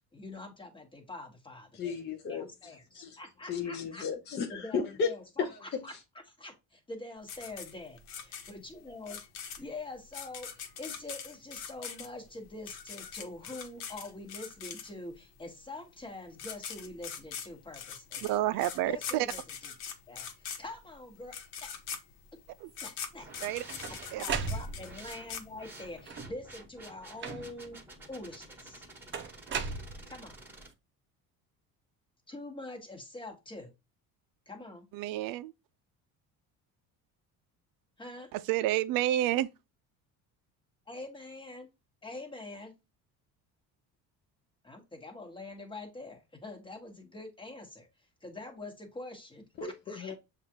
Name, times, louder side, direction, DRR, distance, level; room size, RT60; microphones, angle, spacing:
voice 1, 0.1-1.9 2.3-4.0 4.5-5.9 6.4-9.2 9.6-18.2 18.8-19.7 20.1-21.7 22.8-23.3 24.2-27.8 28.1-28.9 30.1-30.4 32.3-33.7 34.5-34.9 38.0-38.3 40.9-41.7 42.0-42.7 44.6-47.9 48.2-50.1, left 2 dB, 15° left, 1.3 m, -45 dB
voice 2, 1.7-3.2 3.5-5.1 5.4-6.0 49.6-50.2, left 5 dB, 30° left, 0.6 m, -34 dB
sound 1, 7.3-15.2 16.0-16.1 16.3-26.0, left 7 dB, 80° left, 1.0 m, -42 dB
voice 3, 18.2-19.3 22.6-22.7 23.4-23.6 24.1-24.2 34.9-35.5 38.3-39.5, right 14 dB, 70° right, 0.5 m, -29 dB
sound 2, 23.2-30.7, right 2 dB, 5° right, 1.4 m, -51 dB
sound 3, 23.3-25.1 26.0-26.5 27.2-27.8 29.1-30.4, right 5 dB, 30° right, 0.7 m, -37 dB
7.1 x 2.5 x 2.8 m
cardioid pair, 145°, 36 cm